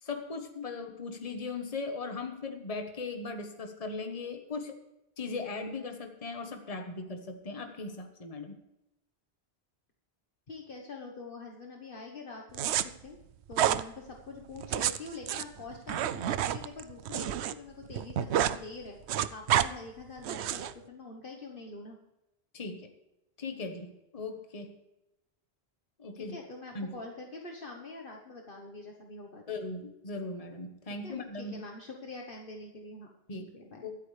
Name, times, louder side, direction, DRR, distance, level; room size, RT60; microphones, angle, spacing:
voice 1, 0.0-4.7 5.2-8.5 22.5-22.9 23.4-24.7 26.0-26.4 26.7-27.0 29.5-31.6 33.3-33.6 33.8-33.9, left 3 dB, 35° left, 5 dB, 1.3 m, -38 dB
voice 2, 10.5-13.2 13.5-19.0 19.3-22.0 26.1-29.6 31.0-33.1 33.5-33.9, left 3 dB, 55° left, 1 dB, 1.4 m, -45 dB
sound 1, 12.5-12.8 13.5-13.8 14.6-17.5 17.8-18.6 18.9-19.7 20.2-20.7, right 11 dB, 85° right, 0.9 m, -29 dB
23.0 x 8.7 x 3.3 m, 0.92 s
omnidirectional pair, 1.1 m